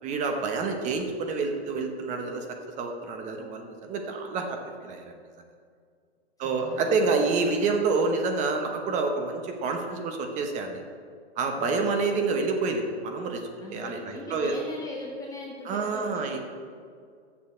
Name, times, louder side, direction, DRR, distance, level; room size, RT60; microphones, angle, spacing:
voice 1, 0.0-2.4 2.8-5.1 6.4-10.8 11.4-13.4 13.7-14.6 15.6-16.4, right 4 dB, 20° right, 4 dB, 0.9 m, -28 dB
voice 2, 6.4-7.3 11.6-11.9 13.6-16.4, left 1 dB, 10° left, -2 dB, 0.5 m, -40 dB
7.0 x 6.8 x 6.3 m, 2.1 s
hypercardioid pair, 140°, 34 cm